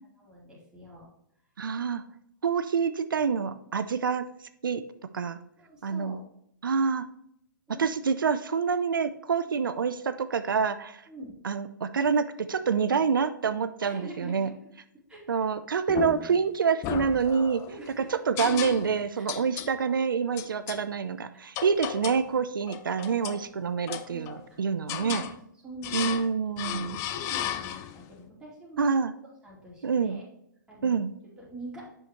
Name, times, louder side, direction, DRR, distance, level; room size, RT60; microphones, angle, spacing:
voice 1, 0.2-1.1 5.2-5.3 5.6-6.2 7.7-7.9 9.4-9.6 11.1-11.3 13.8-14.5 15.1-15.3 17.7-18.1 19.2-19.4 21.3-21.5 23.8-24.3 24.9-25.2 25.6-26.2 26.8-28.9 29.4-30.2 30.7-30.9 31.4-31.9, right 1 dB, 5° right, -6 dB, 2.7 m, -45 dB
voice 2, 1.6-2.0 2.4-4.3 4.6-4.8 5.1-5.4 5.8-6.2 6.6-7.1 7.8-11.0 11.4-14.5 15.3-17.6 18.0-25.2 25.9-27.0 28.8-29.1 29.8-30.2 30.8-31.1, right 6 dB, 85° right, 11 dB, 0.5 m, -27 dB
sound 1, 15.9-16.4 16.8-17.7 18.4-19.0 19.3-19.7 20.4-20.8 21.5-22.3 22.7-23.4 23.9-24.5 24.9-25.3 25.8-26.3 26.6-28.0, left 11 dB, 25° left, 0.4 m, -34 dB
7.8 x 5.8 x 3.0 m, 0.74 s
hypercardioid pair, 135°, 11 cm